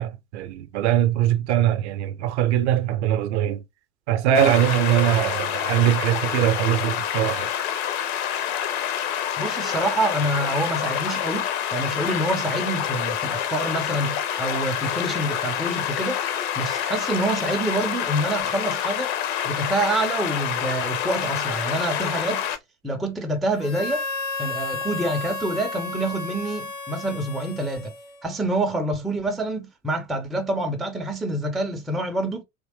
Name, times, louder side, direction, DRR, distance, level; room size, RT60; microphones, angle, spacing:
voice 1, 0.0-3.6 4.1-7.5, right 11 dB, 50° right, 0.6 m, -22 dB
sound 1, 4.3-22.6, left 9 dB, 45° left, 0.7 m, -27 dB
voice 2, 9.4-16.2 16.6-19.1 19.4-22.4 22.8-24.0 24.4-27.9 28.2-32.4, right 1 dB, ahead, 0.4 m, -27 dB
Harmonica, 23.6-28.4, left 3 dB, 75° left, 0.9 m, -33 dB
3.6 x 3.1 x 2.9 m
figure-of-eight pair, 75°, 43 cm